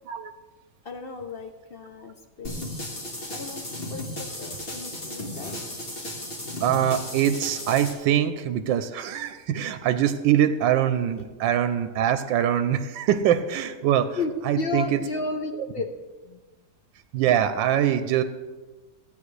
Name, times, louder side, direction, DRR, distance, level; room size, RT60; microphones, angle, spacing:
voice 1, 0.8-2.7 3.3-5.6 14.2-16.0 16.2-16.4, left 3 dB, 70° left, 4 dB, 0.5 m, -33 dB
sound 1, 2.4-7.9, left 1 dB, 30° left, 1.8 m, -35 dB
voice 2, 6.6-14.2 14.4-15.0 17.1-18.2, right 10 dB, 90° right, 10 dB, 1.3 m, -23 dB
15.5 x 9.2 x 3.2 m, 1.3 s
omnidirectional pair, 2.0 m